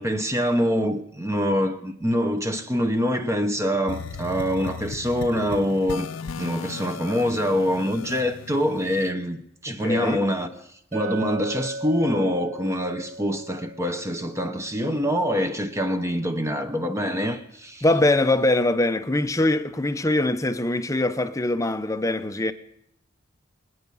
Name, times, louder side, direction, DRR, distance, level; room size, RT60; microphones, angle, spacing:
voice 1, 0.0-6.1 6.4-10.5 10.9-17.8, equal, 15° right, 0.9 m, -25 dB
sound 1, 3.9-9.1, left 5 dB, 65° left, 0.5 m, -37 dB
voice 2, 9.7-10.2 17.8-22.5, left 2 dB, 15° left, 0.7 m, -23 dB
Chink clink, 10.9-15.1, right 2 dB, 45° right, 4.5 m, -37 dB
24.5 x 9.4 x 5.5 m
head